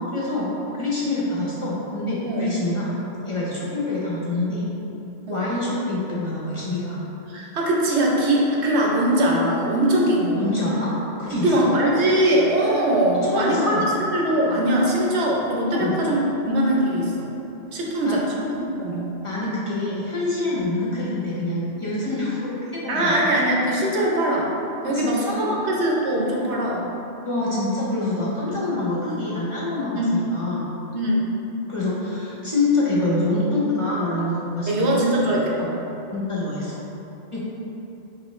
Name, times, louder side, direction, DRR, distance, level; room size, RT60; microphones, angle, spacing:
voice 1, 0.0-2.9 3.3-4.6 5.3-7.0 10.4-10.9 11.2-11.7 13.2-13.8 15.7-16.0 18.0-18.2 19.2-23.1 24.8-25.5 27.2-30.7 31.7-35.0 35.3-35.4 36.1-36.8 37.3-37.4, left 2 dB, 35° left, -7 dB, 0.5 m, -26 dB
voice 2, 7.3-10.4 11.3-16.2 16.4-17.3 17.7-19.1 22.9-24.5 24.8-26.9 28.5-28.6 29.9-30.1 30.9-31.3 34.7-35.8, right 1 dB, 65° right, -2 dB, 0.9 m, -21 dB
5.0 x 3.0 x 3.1 m, 3.0 s
omnidirectional pair, 1.3 m